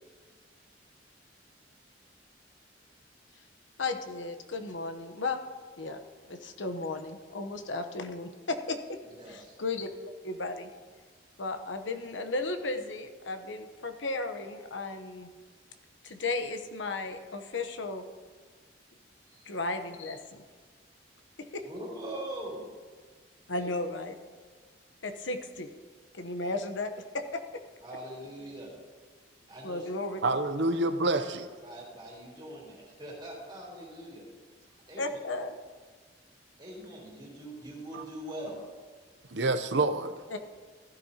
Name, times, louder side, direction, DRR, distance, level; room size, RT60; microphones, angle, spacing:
voice 1, 3.8-5.4 5.8-6.0 6.3-9.0 9.3-9.9 10.2-10.7 11.4-15.3 16.0-18.0 19.5-20.4 21.4-21.6 23.5-24.2 25.0-25.7 26.1-27.4 29.6-30.2 35.0-35.6 40.3-40.4, left 3 dB, 80° left, 1.0 m, -34 dB
voice 2, 9.2-9.5 19.3-19.5 21.6-22.7 23.5-23.7 27.8-28.7 29.5-29.9 31.1-31.2 31.6-34.2 34.9-35.0 36.6-38.6, right 1 dB, 25° right, 3.8 m, -42 dB
voice 3, 30.2-31.5 37.9-38.0 39.3-40.1, right 2 dB, 70° right, 0.7 m, -27 dB
15.5 x 12.5 x 2.9 m
head